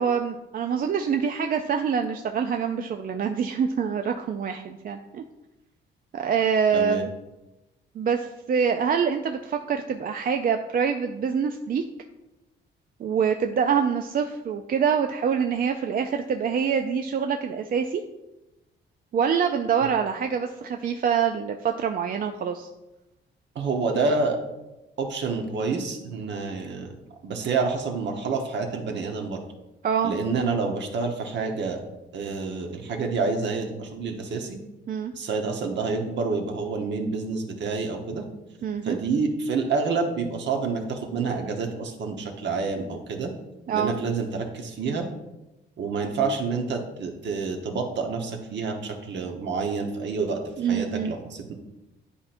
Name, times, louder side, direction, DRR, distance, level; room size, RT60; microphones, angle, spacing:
voice 1, 0.0-5.2 6.1-7.1 8.0-11.8 13.0-18.0 19.1-22.7 29.8-30.1 34.9-35.1 38.6-39.0 43.7-43.9 50.6-51.1, right 7 dB, 45° right, 5 dB, 0.4 m, -25 dB
voice 2, 6.7-7.0 19.8-19.9 23.5-24.4 25.0-26.9 27.2-29.4 30.0-31.8 32.1-34.6 35.1-38.2 38.8-43.3 43.7-45.1 45.8-51.5, right 4 dB, 65° right, 3 dB, 1.1 m, -28 dB
9.9 x 4.3 x 2.6 m, 1.0 s
cardioid pair, 90°, 20 cm